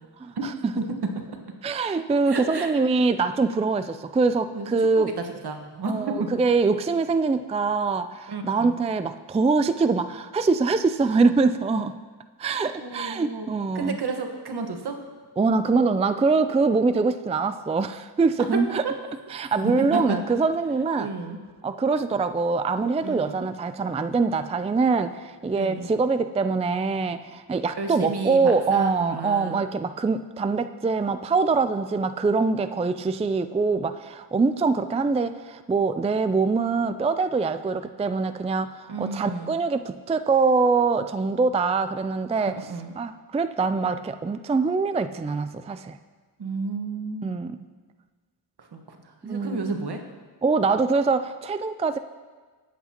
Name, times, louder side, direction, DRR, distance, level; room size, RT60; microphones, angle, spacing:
voice 1, 0.2-0.7 1.6-5.2 5.9-12.0 12.4-14.0 15.4-18.8 19.3-21.1 21.6-46.0 47.2-47.6 49.3-49.9 50.4-52.0, right 4 dB, 15° right, 10 dB, 0.4 m, -24 dB
voice 2, 2.3-2.7 4.5-5.1 5.4-6.3 8.3-8.7 12.8-13.5 13.7-15.0 18.5-18.9 19.6-20.2 21.0-21.4 23.0-23.4 25.5-25.9 27.8-29.6 38.9-39.5 42.4-42.9 46.4-47.4 48.6-50.0, right 3 dB, 70° right, 4 dB, 1.5 m, -31 dB
21.5 x 8.2 x 2.9 m, 1.4 s
cardioid pair, 75°, 41 cm